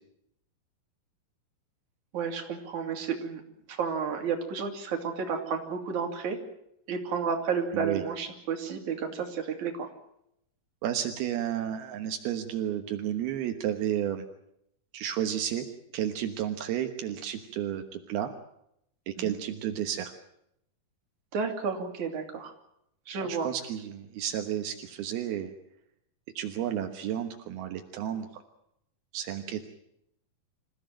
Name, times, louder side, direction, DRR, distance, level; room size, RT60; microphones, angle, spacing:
voice 1, 2.1-3.4 3.7-6.4 6.9-9.9 19.2-19.3 21.3-22.5 23.1-23.5, right 6 dB, 55° right, 3 dB, 4.1 m, -31 dB
voice 2, 10.8-14.3 14.9-15.7 15.9-18.3 19.1-20.1 23.2-25.5 26.4-28.4 29.1-29.6, right 10 dB, 80° right, 5 dB, 3.2 m, -32 dB
26.5 x 15.5 x 9.0 m, 0.77 s
omnidirectional pair, 4.4 m